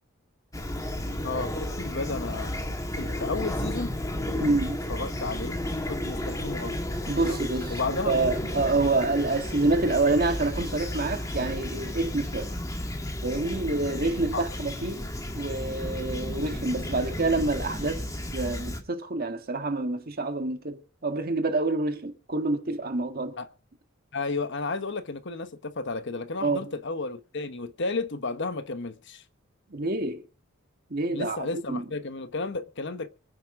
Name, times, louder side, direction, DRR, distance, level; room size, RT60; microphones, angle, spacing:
Fowl / Chirp tweet, 0.5-18.8, left 1 dB, 15° left, 1.9 m, -33 dB
voice 1, 1.2-2.5 3.0-3.9 4.4-4.6 4.9-5.6 5.9-6.8 7.2-7.4 7.7-8.4 14.3-14.4 23.4-23.5 24.1-29.2 31.1-33.1, left 3 dB, 55° left, 1.1 m, -33 dB
voice 2, 4.4-4.8 7.1-7.8 8.0-12.5 13.2-15.0 15.3-18.1 18.3-23.4 26.4-26.7 29.7-30.2 30.9-31.8, right 2 dB, 45° right, 1.6 m, -27 dB
sound 1, 5.8-12.6, left 1 dB, 30° left, 4.5 m, -55 dB
25.0 x 9.7 x 3.7 m
head